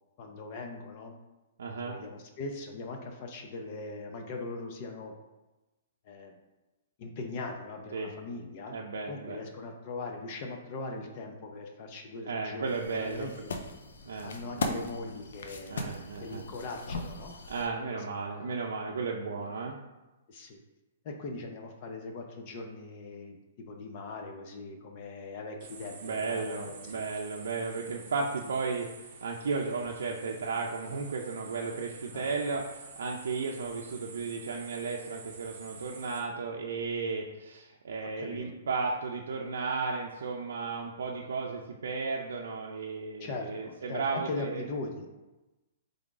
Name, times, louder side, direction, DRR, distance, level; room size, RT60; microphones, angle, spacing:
voice 1, 0.2-1.2 1.8-5.1 6.0-6.4 7.0-8.8 9.1-12.7 13.0-13.3 14.2-15.9 16.2-17.3 17.7-18.0 18.3-18.6 19.4-19.5 20.3-20.6 21.0-26.7 32.1-32.3 38.0-38.6 43.2-45.1, left 3 dB, 30° left, 3 dB, 0.5 m, -40 dB
voice 2, 1.6-2.0 7.9-8.1 8.7-9.4 12.3-13.3 14.0-14.7 15.7-16.5 17.5-19.8 26.0-44.6, right 4 dB, 85° right, -1 dB, 0.5 m, -34 dB
sound 1, 12.7-17.7, left 2 dB, 75° left, 0.6 m, -38 dB
sound 2, 25.6-36.2, right 5 dB, 45° right, 0.8 m, -49 dB
3.6 x 3.4 x 3.8 m, 1.1 s
hypercardioid pair, 175°, 0 cm